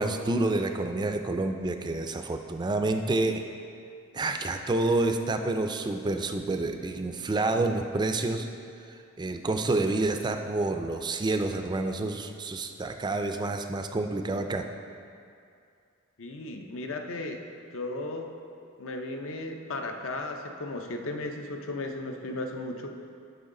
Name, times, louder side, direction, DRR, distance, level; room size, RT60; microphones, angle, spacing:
voice 1, 0.0-3.5 4.1-8.5 9.2-14.7, right 2 dB, 20° right, 6 dB, 0.4 m, -28 dB
voice 2, 16.2-17.4 17.7-18.3 18.8-22.9, left 2 dB, 70° left, 4 dB, 0.7 m, -35 dB
10.5 x 5.4 x 3.8 m, 2.4 s
head